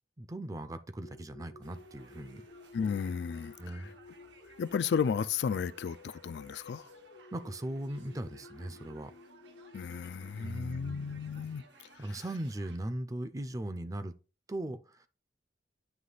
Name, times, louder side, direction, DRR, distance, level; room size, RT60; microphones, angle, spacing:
voice 1, 0.2-2.4 3.6-4.0 7.3-9.1 10.3-11.2 12.0-14.1 14.5-15.1, right 1 dB, 20° right, 0.5 m, -39 dB
sound 1, 1.0-12.0, left 3 dB, 90° left, 0.7 m, -55 dB
sound 2, 1.6-12.8, right 4 dB, 80° right, 1.1 m, -60 dB
voice 2, 2.7-3.9 4.6-6.9 9.7-11.6 12.0-12.2, left 6 dB, 70° left, 0.3 m, -34 dB
9.3 x 3.1 x 3.9 m
head